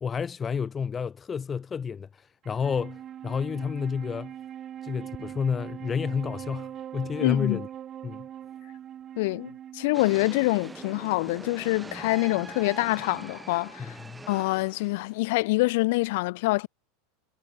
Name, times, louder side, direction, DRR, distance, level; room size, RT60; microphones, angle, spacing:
voice 1, 0.0-4.3 4.8-7.7 8.0-8.3 13.8-14.3, left 6 dB, 20° left, 0.8 m, -30 dB
Wind instrument woodwind instrument, 2.4-11.9, right 10 dB, 30° right, 6.9 m, -42 dB
voice 2, 7.2-7.6 9.2-14.0 14.3-16.7, left 22 dB, 65° left, 0.5 m, -26 dB
sound 1, 9.9-15.4, right 3 dB, 10° right, 1.3 m, -43 dB
supercardioid pair, 135°, 0 cm